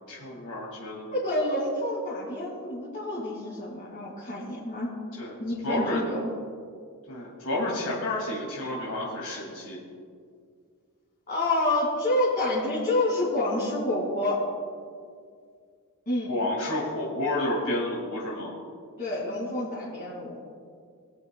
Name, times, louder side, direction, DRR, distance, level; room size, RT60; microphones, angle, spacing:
voice 1, 0.0-1.1 5.2-5.3 5.6-6.0 7.1-9.8 16.3-18.5, left 1 dB, 85° left, -5 dB, 2.3 m, -30 dB
voice 2, 1.1-4.9 5.4-6.3 11.3-14.4 16.1-16.3 19.0-20.4, left 1 dB, 40° left, -7 dB, 2.3 m, -28 dB
21.5 x 8.2 x 2.2 m, 2.2 s
head